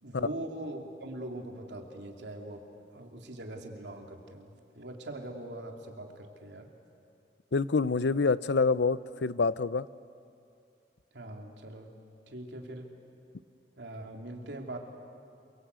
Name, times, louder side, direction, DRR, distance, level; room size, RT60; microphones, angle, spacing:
voice 1, 0.0-6.7 11.1-11.9 12.3-12.9 13.8-14.8, right 1 dB, 85° right, 2 dB, 3.0 m, -42 dB
voice 2, 7.5-9.9, left 4 dB, 85° left, 17 dB, 0.6 m, -26 dB
28.0 x 24.0 x 8.3 m, 2.6 s
head